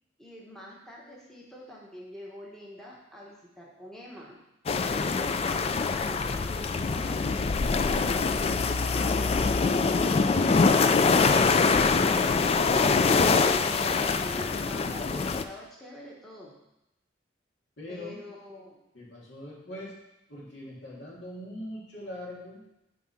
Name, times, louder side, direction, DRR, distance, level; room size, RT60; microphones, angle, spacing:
voice 1, 0.2-4.4 4.9-7.6 13.3-16.5 17.9-18.8 19.7-19.8, equal, ahead, -4 dB, 1.1 m, -45 dB
sound 1, 4.7-15.4, left 4 dB, 35° left, 0.3 m, -24 dB
voice 2, 17.8-18.2 18.9-19.9 20.3-22.6, left 1 dB, 70° left, -4 dB, 2.4 m, -41 dB
9.3 x 3.8 x 5.7 m, 0.89 s
head